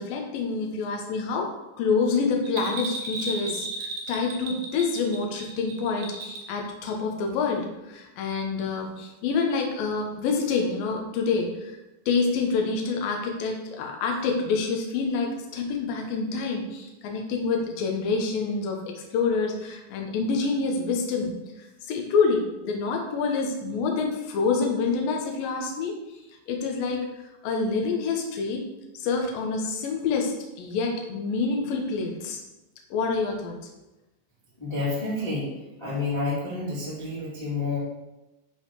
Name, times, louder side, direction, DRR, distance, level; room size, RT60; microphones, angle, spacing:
voice 1, 0.0-11.7 12.1-21.3 21.9-25.9 26.5-27.1 27.4-28.6 28.9-32.4 32.9-33.6, left 4 dB, 65° left, 2 dB, 2.4 m, -27 dB
Bell, 2.4-6.6 6.9-7.0, right 2 dB, 75° right, 1.8 m, -35 dB
voice 2, 34.6-35.5 35.8-37.8, left 3 dB, 10° left, -10 dB, 1.8 m, -29 dB
11.0 x 4.1 x 4.9 m, 0.98 s
omnidirectional pair, 5.5 m